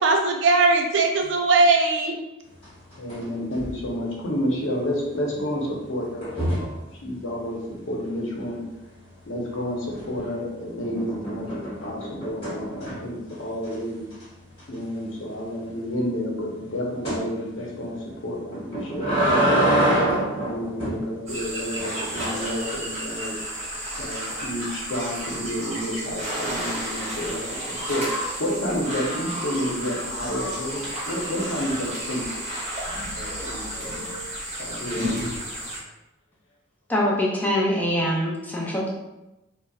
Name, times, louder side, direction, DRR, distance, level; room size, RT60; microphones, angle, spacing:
voice 1, 0.0-2.2, right 3 dB, 70° right, 2 dB, 0.4 m, -19 dB
sound 1, 2.6-3.2 3.5-3.9 6.2-6.8 9.9-10.4 10.8-13.2 13.6-13.7 14.1-14.2 14.6-14.7 17.0-17.2 18.5-21.0 21.8-22.3, right 1 dB, 30° left, 1.1 m, -25 dB
voice 2, 3.0-7.6 7.9-8.6 9.3-14.1 14.7-19.2 19.8-23.4 24.0-27.4 27.9-28.1 28.4-32.2 33.1-33.9 34.6-35.2, equal, 75° left, -2 dB, 0.8 m, -30 dB
sound 2, 21.3-35.8, equal, 35° right, 0.7 m, -32 dB
voice 3, 36.9-38.9, left 1 dB, 10° left, -3 dB, 0.5 m, -24 dB
4.0 x 2.0 x 2.3 m, 0.97 s
head